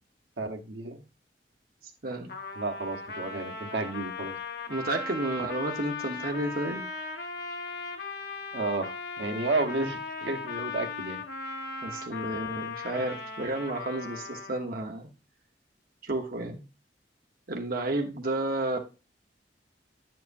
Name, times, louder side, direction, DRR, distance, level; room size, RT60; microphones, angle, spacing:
voice 1, 0.4-1.0 2.6-4.3 8.5-11.2, right 3 dB, 85° right, 6 dB, 1.1 m, -32 dB
Trumpet, 2.3-14.7, left 4 dB, 60° left, 1.2 m, -38 dB
voice 2, 4.7-6.8 11.8-15.1 16.0-16.6 17.5-18.8, right 2 dB, 55° right, 2 dB, 1.1 m, -31 dB
9.6 x 7.6 x 2.6 m, 0.30 s
head